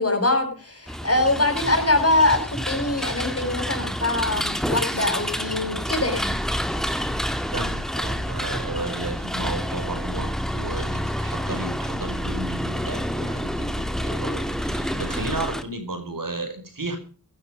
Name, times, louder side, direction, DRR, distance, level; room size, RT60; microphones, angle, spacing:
voice 1, 0.0-6.4, left 2 dB, 40° left, 6 dB, 6.7 m, -23 dB
sound 1, 0.9-15.6, equal, ahead, 2.2 m, -28 dB
voice 2, 7.5-17.0, right 2 dB, 65° right, 7 dB, 5.3 m, -33 dB
16.0 x 12.0 x 5.1 m, 0.37 s
cardioid pair, 50°, 36 cm